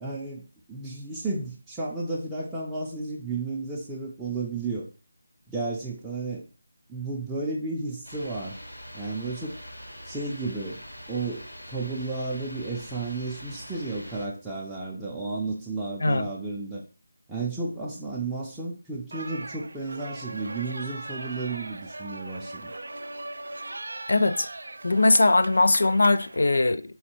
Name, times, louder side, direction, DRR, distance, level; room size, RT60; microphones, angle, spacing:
voice 1, 0.0-4.9 5.5-6.4 6.9-8.6 8.9-9.6 10.1-10.8 11.1-16.8 17.3-22.7, right 3 dB, 5° right, 0.5 m, -33 dB
sound 1, 8.0-14.2, equal, 90° left, 1.7 m, -43 dB
sound 2, 19.1-26.4, right 2 dB, 65° right, 0.3 m, -39 dB
voice 2, 24.1-24.5 24.8-26.8, left 2 dB, 60° left, 0.3 m, -20 dB
4.1 x 3.2 x 2.9 m
figure-of-eight pair, 160°, 0 cm